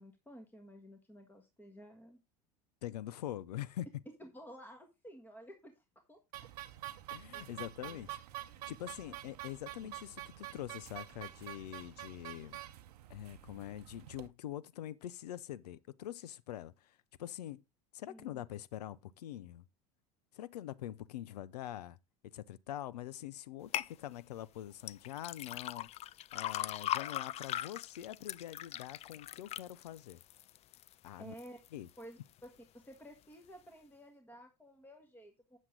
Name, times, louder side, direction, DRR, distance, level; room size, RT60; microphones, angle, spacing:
voice 1, 0.0-2.2 4.2-6.5 7.3-7.5 7.8-8.0 9.0-9.1 18.1-18.4 31.2-31.6 32.0-35.6, equal, 10° left, 1.6 m, -53 dB
voice 2, 2.8-4.0 7.1-8.2 8.7-12.6 13.1-17.6 17.9-19.6 20.3-22.0 22.3-25.9 26.3-30.2 31.0-31.3 31.7-31.9, left 12 dB, 75° left, 0.6 m, -44 dB
sound 1, 6.3-14.3, right 15 dB, 75° right, 0.8 m, -47 dB
sound 2, 23.7-23.9 24.8-30.9 31.4-31.9 32.4-32.5, left 13 dB, 30° left, 0.3 m, -39 dB
8.3 x 7.3 x 3.7 m
hypercardioid pair, 85°, 20 cm